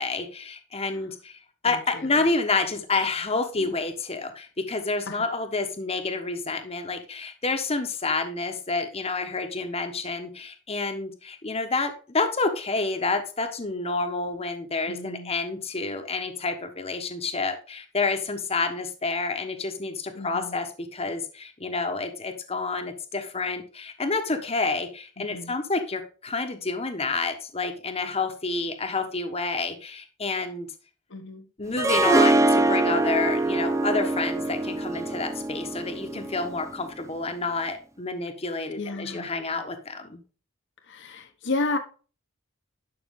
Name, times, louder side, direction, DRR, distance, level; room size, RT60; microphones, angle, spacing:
voice 1, 0.0-1.4 1.6-30.7 31.6-40.2, left 3 dB, 30° left, 1.2 m, -29 dB
voice 2, 1.6-2.2 3.6-3.8 5.1-5.3 14.9-15.3 20.1-20.6 25.2-25.6 31.1-31.5 38.8-39.4 40.8-41.8, left 3 dB, 60° left, 1.2 m, -33 dB
Harp, 31.8-36.8, right 2 dB, 15° right, 0.5 m, -24 dB
11.5 x 5.9 x 3.7 m
head